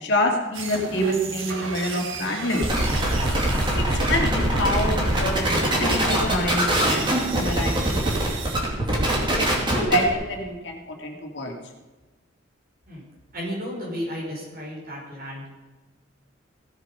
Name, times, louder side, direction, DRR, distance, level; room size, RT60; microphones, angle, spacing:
voice 1, 0.0-2.6 3.9-5.5 5.8-8.5 9.0-9.3 9.9-11.5, left 1 dB, 65° left, 2 dB, 2.0 m, -27 dB
sound 1, 0.5-8.6, right 3 dB, 85° right, 1.4 m, -35 dB
sound 2, 2.6-10.1, right 1 dB, 25° right, 2.6 m, -23 dB
voice 2, 13.3-15.5, equal, 50° right, -4 dB, 5.3 m, -33 dB
16.5 x 7.4 x 5.4 m, 1.2 s
head